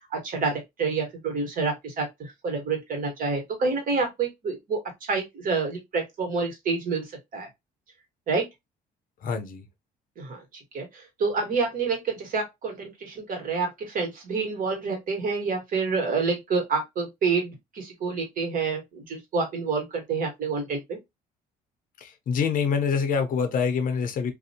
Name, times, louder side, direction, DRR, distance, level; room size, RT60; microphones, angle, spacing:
voice 1, 0.1-4.8 5.1-7.0 7.3-7.5 8.3-8.4 10.2-10.4 10.7-21.0, right 4 dB, 55° right, 1.3 m, -28 dB
voice 2, 9.2-9.7 22.0-24.3, left 6 dB, 55° left, 0.6 m, -26 dB
2.6 x 2.1 x 2.7 m
cardioid pair, 110°, 17 cm